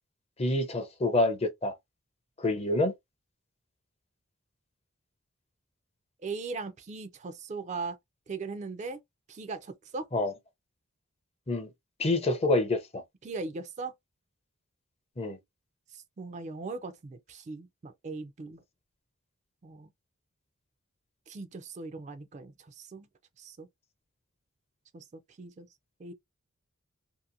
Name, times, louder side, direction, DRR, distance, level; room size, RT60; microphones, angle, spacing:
voice 1, 0.4-1.7 2.4-2.9 10.1-10.3 11.5-11.7 12.0-13.0 15.2-15.4, left 2 dB, 30° left, 0.5 m, -27 dB
voice 2, 6.2-8.0 8.3-9.0 9.3-10.1 13.2-13.9 15.9-18.6 19.6-19.9 21.3-23.1 23.4-23.7 24.9-25.0 25.4-25.7 26.0-26.1, right 4 dB, 35° right, 0.3 m, -39 dB
2.7 x 2.5 x 2.5 m
head